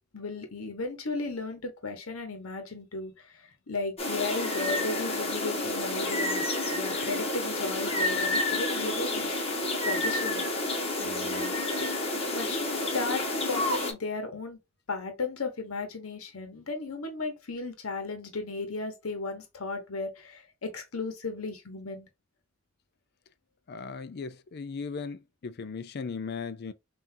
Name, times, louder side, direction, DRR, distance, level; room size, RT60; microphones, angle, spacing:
voice 1, 0.1-10.5 11.0-11.9 12.3-14.6 14.9-22.1, left 3 dB, 80° left, 1.1 m, -35 dB
sound 1, 4.0-13.9, left 2 dB, 30° left, 1.4 m, -29 dB
voice 2, 23.7-26.7, left 5 dB, 50° left, 0.5 m, -37 dB
5.8 x 2.6 x 2.7 m
head